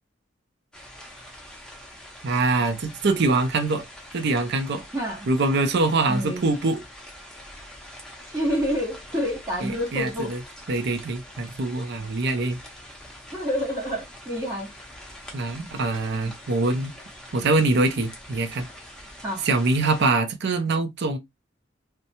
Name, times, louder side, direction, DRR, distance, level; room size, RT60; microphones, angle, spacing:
sound 1, 0.7-20.1, equal, 5° left, 0.6 m, -44 dB
voice 1, 2.2-3.9 4.1-4.8 5.3-6.8 9.6-10.4 10.7-12.6 15.3-16.9 17.3-18.7 19.4-21.2, right 3 dB, 60° right, 0.5 m, -24 dB
voice 2, 4.9-5.3 6.1-6.5 8.3-10.3 13.3-14.7 19.2-19.4, equal, 20° right, 0.9 m, -28 dB
2.8 x 2.1 x 2.6 m
head